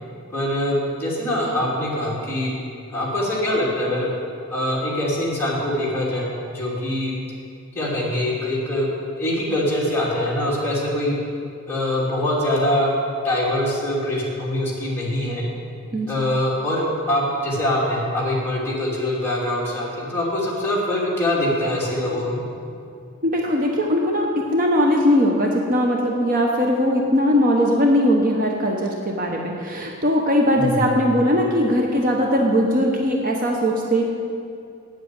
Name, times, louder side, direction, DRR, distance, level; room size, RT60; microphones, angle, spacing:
voice 1, 0.3-2.5 2.9-4.1 4.5-6.3 6.5-7.1 7.7-8.9 9.2-11.2 11.7-12.9 13.2-15.4 16.1-22.4 30.6-30.8, left 1 dB, 10° left, -6 dB, 2.5 m, -23 dB
voice 2, 23.2-34.0, equal, 40° right, 0 dB, 0.9 m, -20 dB
8.8 x 7.9 x 8.1 m, 2.4 s
head